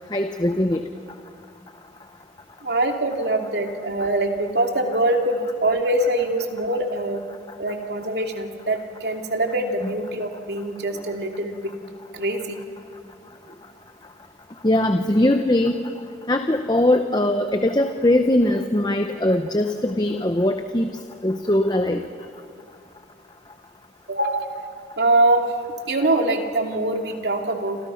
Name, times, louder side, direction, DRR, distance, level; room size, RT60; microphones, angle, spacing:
voice 1, 0.1-0.8 9.8-9.9 14.6-15.9 16.3-20.9 21.2-22.0, left 1 dB, 25° left, 7 dB, 0.9 m, -21 dB
voice 2, 2.6-7.2 7.6-11.7 12.1-12.6 24.1-24.6 25.0-25.5 25.9-27.9, right 2 dB, 70° right, 3 dB, 2.7 m, -23 dB
29.0 x 26.5 x 5.8 m, 2.5 s
head